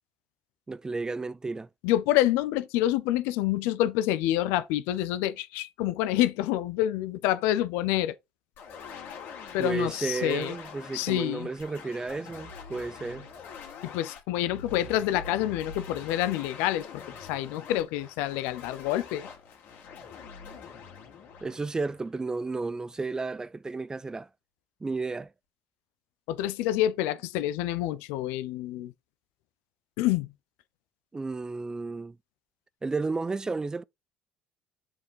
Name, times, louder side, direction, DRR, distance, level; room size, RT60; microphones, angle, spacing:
voice 1, 0.7-1.7 9.6-13.3 21.4-24.3 24.8-25.3 31.1-32.2 32.8-33.8, right 3 dB, 20° right, 0.4 m, -32 dB
voice 2, 1.8-8.1 9.5-10.5 10.9-11.5 13.8-16.9 17.3-19.3 26.3-28.9 30.0-30.3, left 13 dB, 80° left, 0.6 m, -27 dB
sound 1, 8.6-22.4, left 6 dB, 65° left, 2.1 m, -45 dB
7.0 x 3.6 x 4.7 m
supercardioid pair, 85°, 4 cm